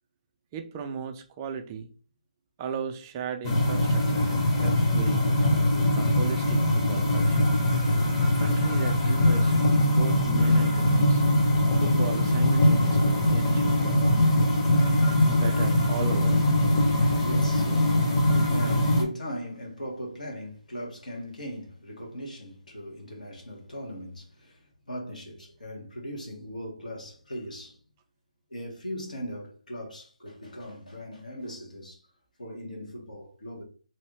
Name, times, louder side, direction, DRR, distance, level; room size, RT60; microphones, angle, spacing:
voice 1, 0.5-1.9 2.6-5.4 5.9-7.5 8.3-11.2 11.7-14.3 15.2-16.4, right 6 dB, 20° right, 0.4 m, -36 dB
sound 1, 3.4-19.0, left 1 dB, 30° left, 0.9 m, -22 dB
voice 2, 17.1-27.8 28.5-32.0 32.4-33.6, equal, 80° left, 1.6 m, -39 dB
3.1 x 2.6 x 3.2 m
figure-of-eight pair, 150°, 4 cm